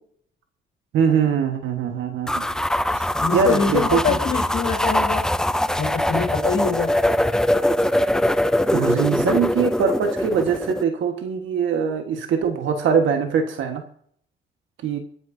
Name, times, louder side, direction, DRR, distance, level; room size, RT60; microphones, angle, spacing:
voice 1, 0.9-2.6 2.9-3.0 3.3-4.2 8.7-13.8 14.8-15.0, right 6 dB, 75° right, 5 dB, 1.5 m, -22 dB
sound 1, 2.3-10.8, left 1 dB, 5° left, 0.4 m, -22 dB
voice 2, 3.2-5.2 5.8-6.9, left 5 dB, 65° left, -3 dB, 4.0 m, -24 dB
24.5 x 9.4 x 2.7 m, 0.64 s
cardioid pair, 90°, 20 cm